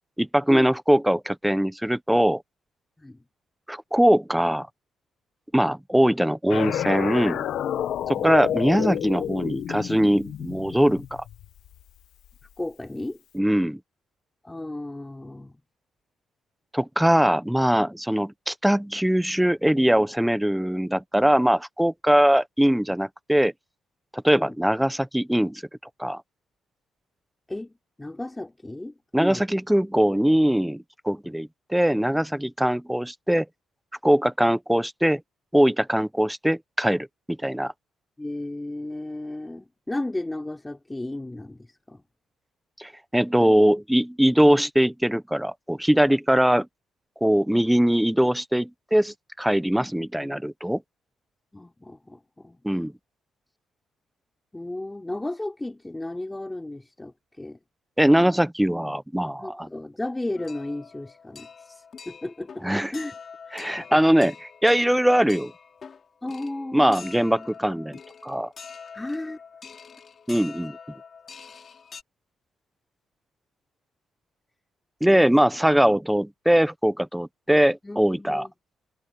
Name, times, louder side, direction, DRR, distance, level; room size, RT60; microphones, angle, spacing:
voice 1, 0.2-2.4 3.7-4.7 5.5-7.4 8.1-11.2 13.3-13.8 16.7-23.5 24.1-25.6 26.0-26.2 29.1-33.5 34.0-35.2 35.5-37.7 42.8-46.7 47.2-50.8 52.6-52.9 58.0-59.7 62.6-62.9 63.5-65.5 66.7-68.5 70.3-70.8 75.0-78.5, equal, 5° right, 0.9 m, -21 dB
sound 1, 6.5-11.8, left 10 dB, 75° left, 1.3 m, -29 dB
voice 2, 12.6-13.2 14.4-15.6 24.3-24.6 27.5-27.7 28.0-29.4 31.2-31.4 38.2-42.0 51.5-52.6 54.5-57.6 59.4-63.1 63.5-64.0 66.2-67.0 68.9-69.4 75.1-75.2 77.8-78.5, left 2 dB, 10° left, 5.3 m, -34 dB
sound 2, 60.4-72.0, left 6 dB, 45° left, 3.3 m, -45 dB
cardioid pair, 90°, 0 cm